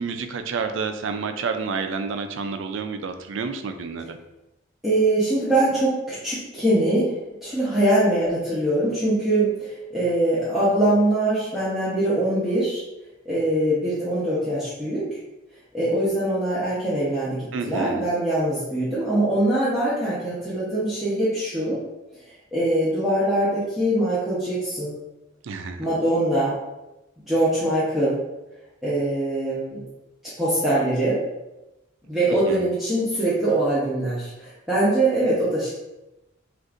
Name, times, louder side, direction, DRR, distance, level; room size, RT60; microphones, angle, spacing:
voice 1, 0.0-4.2 17.5-18.0 25.4-25.9 32.5-32.7, right 5 dB, 70° right, 7 dB, 0.4 m, -29 dB
voice 2, 4.8-7.1 7.4-12.8 13.2-15.0 15.7-21.8 22.5-24.9 25.8-26.6 27.2-28.2 28.8-29.8 30.4-31.2 32.1-35.7, right 1 dB, ahead, -11 dB, 0.8 m, -22 dB
6.3 x 2.6 x 2.5 m, 1.0 s
head